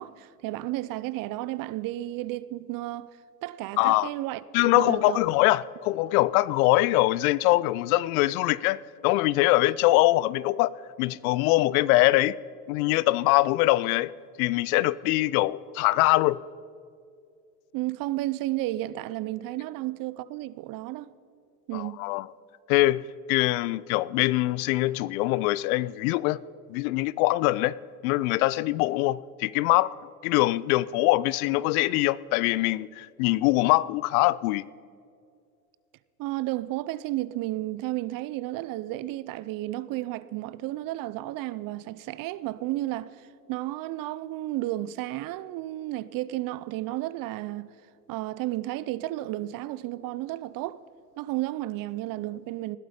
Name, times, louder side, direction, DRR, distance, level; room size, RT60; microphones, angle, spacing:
voice 1, 0.0-3.1 3.4-5.2 17.7-21.1 21.7-22.0 36.2-47.7 48.1-50.8 51.2-52.8, right 16 dB, 45° right, 0.6 m, -32 dB
voice 2, 3.8-4.1 4.5-12.4 12.7-14.1 14.4-16.4 21.7-22.3 22.7-23.0 23.3-26.4 26.7-27.8 28.0-29.9 30.2-34.6, left 18 dB, 65° left, 0.6 m, -23 dB
20.0 x 12.5 x 5.1 m
hypercardioid pair, 95°, 47 cm